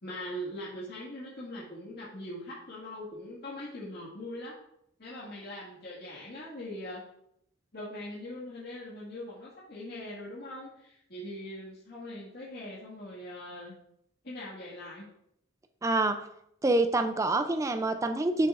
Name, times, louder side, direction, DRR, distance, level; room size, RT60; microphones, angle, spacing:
voice 1, 0.0-4.6 5.0-7.0 7.7-13.7 14.2-15.1, left 1 dB, 55° left, -7 dB, 1.9 m, -41 dB
voice 2, 15.8-16.2 16.6-18.5, right 2 dB, 15° right, 7 dB, 0.4 m, -26 dB
10.0 x 6.8 x 2.5 m, 0.75 s
head